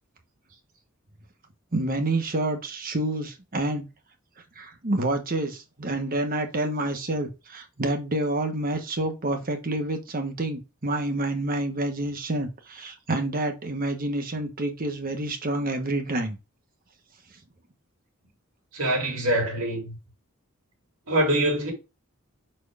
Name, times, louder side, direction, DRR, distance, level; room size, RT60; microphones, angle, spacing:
voice 1, 1.7-3.9 4.6-16.4, right 2 dB, 45° right, 1.2 m, -28 dB
voice 2, 18.7-20.0 21.1-21.7, right 1 dB, 80° right, 2.4 m, -24 dB
6.2 x 4.4 x 3.4 m
head